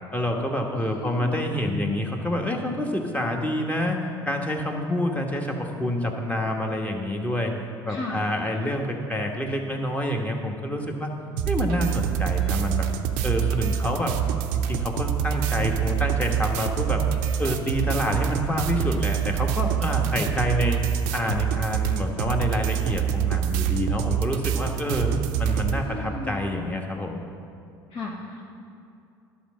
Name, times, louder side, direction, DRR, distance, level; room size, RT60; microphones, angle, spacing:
voice 1, 0.1-4.0 4.3-7.5 7.8-11.1 11.5-12.9 13.2-14.1 14.5-17.0 17.4-20.8 21.1-25.1 25.4-27.2, left 1 dB, 15° left, 2 dB, 1.2 m, -27 dB
voice 2, 0.7-1.3 7.9-8.2 25.7-26.3 27.9-28.5, left 2 dB, 55° left, -5 dB, 1.3 m, -36 dB
sound 1, 11.4-25.8, right 9 dB, 80° right, 0.5 m, -26 dB
Wind instrument woodwind instrument, 12.4-18.5, left 4 dB, 75° left, 1.7 m, -51 dB
11.0 x 4.2 x 6.3 m, 2.5 s
hypercardioid pair, 70°, 11 cm